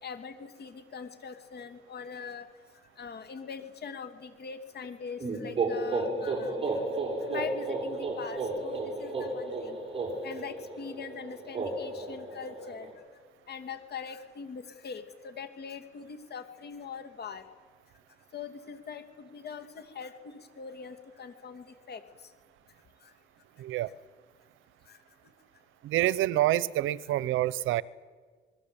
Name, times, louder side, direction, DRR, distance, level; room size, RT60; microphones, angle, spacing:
voice 1, 0.0-2.5 3.0-6.7 7.3-9.8 10.2-12.9 13.5-17.4 18.3-22.0 24.9-25.0, left 6 dB, 55° left, 8 dB, 2.9 m, -42 dB
sound 1, 5.2-12.9, right 2 dB, 30° right, 7.4 m, -33 dB
voice 2, 23.6-23.9 25.8-27.8, right 14 dB, 90° right, 19 dB, 0.8 m, -27 dB
26.5 x 21.0 x 8.8 m, 1.5 s
cardioid pair, 90°, 20 cm